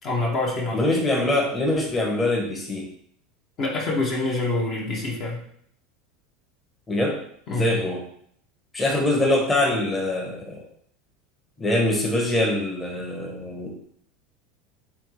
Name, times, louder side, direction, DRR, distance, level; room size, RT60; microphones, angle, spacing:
voice 1, 0.0-0.8 3.6-5.4 7.5-7.8, left 2 dB, 45° left, -2 dB, 1.1 m, -26 dB
voice 2, 0.7-2.9 6.9-7.2 7.5-8.0 8.7-10.6 11.6-13.7, left 1 dB, 20° left, -1 dB, 1.1 m, -23 dB
3.6 x 3.4 x 3.1 m, 0.66 s
hypercardioid pair, 80°, 0 cm